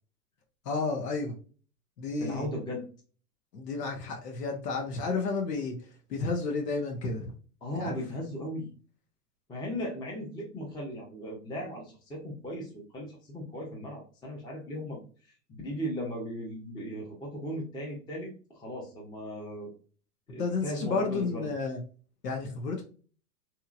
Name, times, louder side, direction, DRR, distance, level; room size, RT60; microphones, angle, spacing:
voice 1, 0.6-1.3 2.0-2.5 3.5-5.7 6.1-7.3 7.8-7.9 20.4-21.8 22.2-22.8, left 4 dB, 85° left, 0.9 m, -31 dB
voice 2, 2.2-2.9 7.6-8.7 9.5-19.7 20.3-21.5, equal, 10° left, 0.6 m, -37 dB
3.0 x 2.7 x 2.4 m
hypercardioid pair, 115°, 47 cm